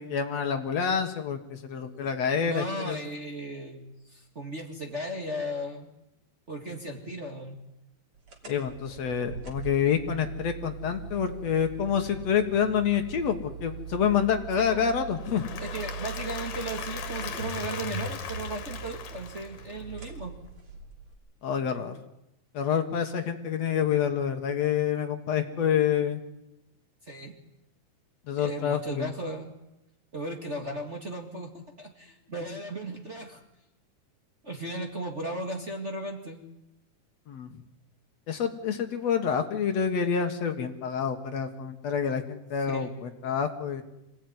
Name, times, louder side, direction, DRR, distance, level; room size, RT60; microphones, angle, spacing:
voice 1, 0.0-3.0 8.4-15.5 21.4-22.0 22.5-26.2 28.3-29.1 37.3-37.5 38.3-43.8, left 7 dB, 60° left, 6 dB, 2.5 m, -27 dB
voice 2, 1.8-2.1 2.4-5.9 6.5-7.6 14.6-14.9 15.6-20.3 27.1-27.4 28.3-29.5 30.1-31.5 31.8-33.4 34.4-36.5 42.7-42.9, right 1 dB, 25° right, 1 dB, 1.9 m, -36 dB
sound 1, 8.3-21.1, right 5 dB, 45° right, 4.0 m, -41 dB
Applause / Crowd, 15.1-20.1, left 8 dB, 80° left, 3.2 m, -39 dB
26.0 x 17.0 x 9.6 m, 0.91 s
omnidirectional pair, 3.5 m